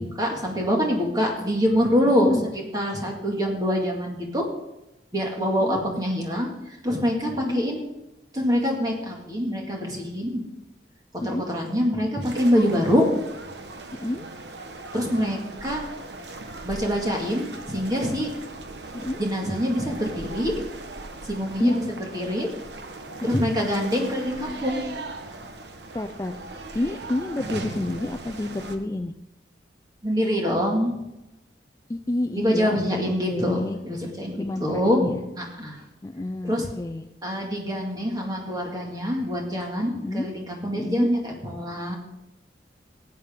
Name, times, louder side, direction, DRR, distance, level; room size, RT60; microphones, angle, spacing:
voice 1, 0.0-2.5 2.7-4.5 5.1-7.9 8.3-10.5 11.1-13.1 14.9-15.8 16.6-18.3 19.2-20.6 21.2-22.5 23.2-24.9 30.0-31.0 32.3-35.8 36.4-36.7 37.2-42.0, equal, 20° right, 0 dB, 2.1 m, -25 dB
voice 2, 2.2-2.5 5.4-5.8 7.3-7.7 11.2-11.5 14.0-14.3 18.9-19.2 21.6-21.8 23.2-23.4 25.9-26.4 26.7-29.1 31.9-33.8 34.4-35.2 36.0-37.1 39.9-40.3 40.7-41.1, left 1 dB, 15° left, 7 dB, 0.3 m, -29 dB
sound 1, 12.2-28.8, right 2 dB, 65° right, 1.1 m, -39 dB
15.5 x 9.1 x 3.7 m, 0.93 s
head